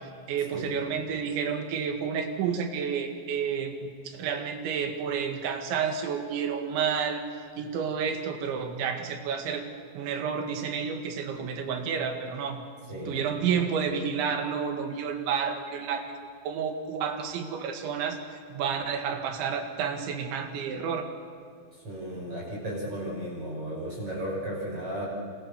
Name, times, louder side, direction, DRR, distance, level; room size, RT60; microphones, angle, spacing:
voice 1, 0.3-7.2 7.6-9.6 10.0-12.6 13.1-16.0 16.5-18.2 18.5-21.1, right 6 dB, 85° right, 5 dB, 4.3 m, -30 dB
voice 2, 12.9-13.4 21.7-25.0, equal, 30° right, -6 dB, 7.0 m, -35 dB
28.5 x 27.0 x 7.1 m, 2.1 s
omnidirectional pair, 5.2 m